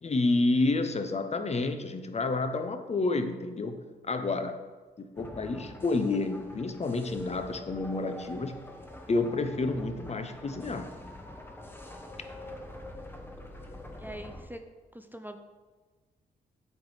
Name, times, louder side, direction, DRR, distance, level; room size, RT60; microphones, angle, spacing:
voice 1, 0.0-4.6 5.0-8.6 9.1-10.9, left 3 dB, 35° left, 8 dB, 0.6 m, -29 dB
sound 1, 5.2-14.4, left 1 dB, 10° left, 1.1 m, -45 dB
voice 2, 14.0-14.6 14.9-15.4, right 1 dB, 10° right, 6 dB, 0.5 m, -43 dB
7.8 x 3.3 x 4.8 m, 1.3 s
cardioid pair, 60°, 19 cm